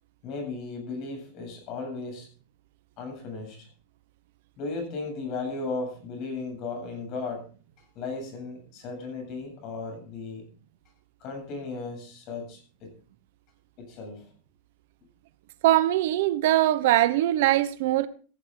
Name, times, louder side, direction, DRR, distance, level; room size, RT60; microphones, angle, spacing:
voice 1, 0.2-2.3 3.0-3.7 4.6-7.4 8.0-10.4 11.2-12.9 13.8-14.3, left 3 dB, 35° left, 7.7 m, -35 dB
voice 2, 15.6-18.1, right 14 dB, 60° right, 1.0 m, -22 dB
16.5 x 14.5 x 3.9 m
supercardioid pair, 170°, 0 cm